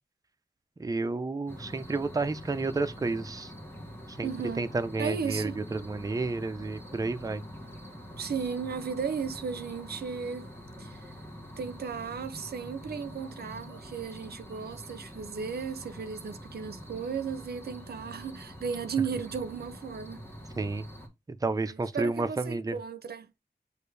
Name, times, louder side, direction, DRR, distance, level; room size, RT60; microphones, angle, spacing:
voice 1, 0.8-3.5 4.1-4.3 4.6-7.4 20.6-20.9 21.3-22.8, right 3 dB, 20° right, 0.5 m, -31 dB
sound 1, 1.5-21.1, equal, 15° left, 1.3 m, -45 dB
voice 2, 4.2-4.7 5.0-5.6 8.2-10.5 10.8-11.1 11.6-20.2 21.7-23.3, right 6 dB, 85° right, 0.5 m, -35 dB
6.4 x 2.5 x 3.2 m
wide cardioid pair, 115°, 16 cm